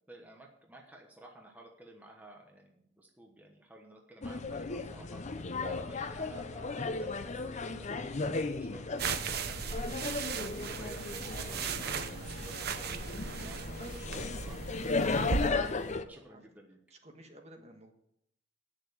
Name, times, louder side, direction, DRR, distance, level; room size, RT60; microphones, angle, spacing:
voice 1, 0.1-16.8, right 1 dB, 10° right, 0 dB, 1.1 m, -53 dB
sound 1, 4.2-16.0, left 3 dB, 40° left, 0.6 m, -36 dB
sound 2, 9.0-15.5, right 5 dB, 55° right, 0.8 m, -37 dB
sound 3, 9.1-15.9, left 2 dB, 15° left, 2.3 m, -60 dB
voice 2, 12.9-13.3 16.1-16.4 16.9-17.9, right 1 dB, 35° right, 3 dB, 1.6 m, -55 dB
9.1 x 6.7 x 8.4 m, 0.77 s
head